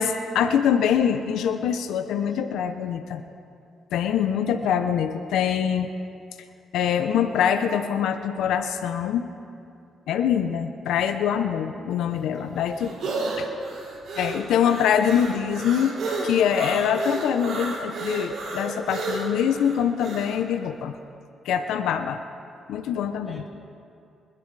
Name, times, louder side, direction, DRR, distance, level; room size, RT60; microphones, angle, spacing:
voice 1, 0.0-3.2 3.9-5.9 6.7-9.2 10.1-12.9 13.4-13.5 14.2-21.0 21.4-22.2 22.7-23.4, left 8 dB, 85° left, 8 dB, 0.7 m, -24 dB
voice 2, 12.1-12.7 21.5-21.8 23.2-23.5, left 1 dB, ahead, -5 dB, 4.2 m, -47 dB
sound 1, 12.1-20.4, right 3 dB, 65° right, 3.7 m, -32 dB
26.0 x 11.5 x 3.3 m, 2.5 s
cardioid pair, 90°, 0 cm